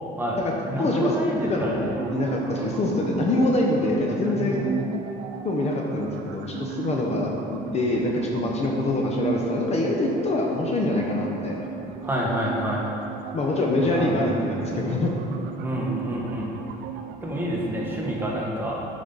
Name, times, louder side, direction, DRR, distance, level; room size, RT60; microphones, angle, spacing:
voice 1, 0.2-2.1 2.5-2.7 3.8-4.0 4.2-4.7 12.0-12.9 13.8-14.3 14.8-15.0 15.6-16.5 17.2-18.8, equal, 10° right, -4 dB, 1.5 m, -29 dB
voice 2, 0.8-1.1 1.4-4.6 5.4-11.7 13.3-15.1, left 2 dB, 40° left, -1 dB, 0.9 m, -25 dB
sound 1, 1.9-18.4, right 8 dB, 90° right, 0.4 m, -36 dB
8.5 x 5.3 x 4.1 m, 2.8 s
cardioid pair, 110°, 17 cm